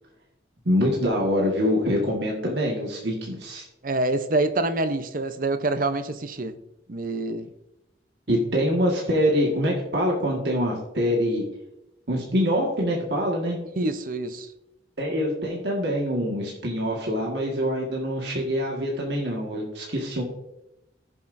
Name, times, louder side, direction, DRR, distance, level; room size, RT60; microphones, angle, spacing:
voice 1, 0.6-3.6 8.3-11.4 12.1-13.6 15.0-20.2, equal, 70° right, -2 dB, 1.7 m, -25 dB
voice 2, 3.8-6.6 6.9-7.5 13.8-14.5, right 2 dB, 50° right, 10 dB, 0.7 m, -26 dB
15.5 x 7.2 x 2.6 m, 0.91 s
head